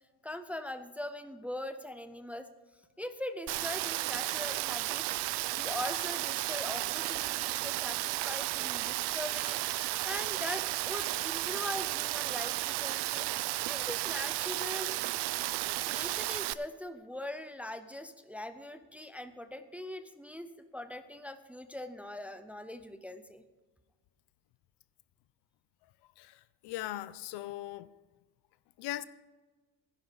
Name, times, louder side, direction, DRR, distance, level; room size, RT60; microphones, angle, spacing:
voice 1, 0.2-2.5 3.0-5.1 5.6-13.3 13.7-15.1 15.9-23.4, left 1 dB, 5° right, 0.4 m, -41 dB
Rain, 3.5-16.5, right 18 dB, 85° right, 0.6 m, -33 dB
voice 2, 26.2-27.9 28.8-29.0, left 15 dB, 90° left, 0.7 m, -39 dB
15.5 x 10.5 x 3.9 m
cardioid pair, 165°, 39 cm